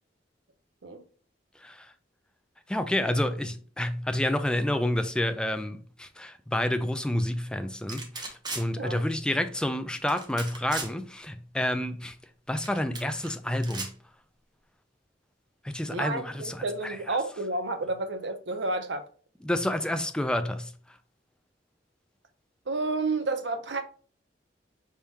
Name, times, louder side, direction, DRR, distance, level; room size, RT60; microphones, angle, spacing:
voice 1, 1.6-1.9 2.7-12.2 12.5-13.9 15.6-17.2 19.4-20.7, left 1 dB, 5° left, 0.4 m, -29 dB
sound 1, 7.9-8.6 10.1-10.9 12.6-13.3 13.6-13.9, right 3 dB, 25° right, 0.9 m, -36 dB
voice 2, 15.9-16.2 16.6-19.1 22.7-23.8, right 3 dB, 70° right, 0.7 m, -30 dB
4.7 x 3.6 x 2.8 m
head